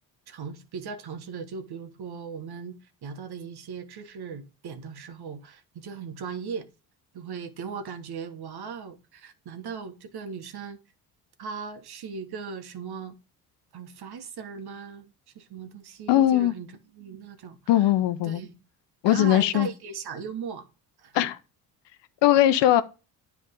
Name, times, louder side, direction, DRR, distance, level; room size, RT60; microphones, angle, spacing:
voice 1, 0.3-6.7 7.1-10.8 11.4-13.2 13.7-17.9 18.2-18.6 19.0-20.7 21.0-21.3, right 6 dB, 50° right, 1.4 m, -38 dB
voice 2, 16.1-16.5 17.7-18.4 19.0-19.7 21.1-21.4 22.2-22.8, left 13 dB, 60° left, 0.8 m, -20 dB
9.5 x 3.6 x 5.1 m
hypercardioid pair, 55°, 48 cm